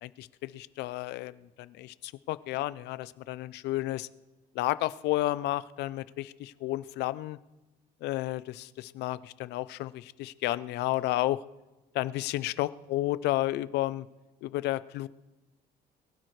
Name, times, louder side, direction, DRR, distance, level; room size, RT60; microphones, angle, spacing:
voice 1, 0.0-4.1 4.5-7.4 8.0-11.4 11.9-14.1 14.4-15.1, left 16 dB, 85° left, 17 dB, 0.6 m, -32 dB
23.0 x 16.0 x 3.2 m, 1.1 s
cardioid pair, 110°, 17 cm